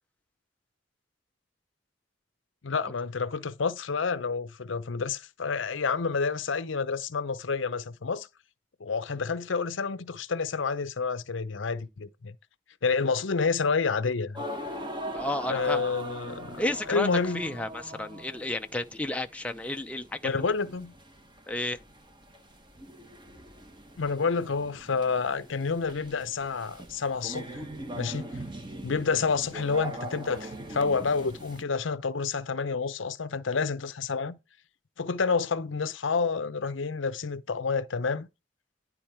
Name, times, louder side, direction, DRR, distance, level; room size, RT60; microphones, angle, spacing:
voice 1, 2.6-8.3 8.8-12.3 12.8-14.4 15.5-17.4 20.2-20.9 24.0-27.5 27.9-28.4 28.8-34.4 35.0-38.3, left 5 dB, 75° left, 0.7 m, -29 dB
sound 1, 14.3-31.6, right 1 dB, 25° right, 1.3 m, -41 dB
voice 2, 15.1-15.9 16.6-17.1 17.3-20.4 21.5-21.8, left 1 dB, 5° left, 0.5 m, -32 dB
10.5 x 4.1 x 4.3 m
head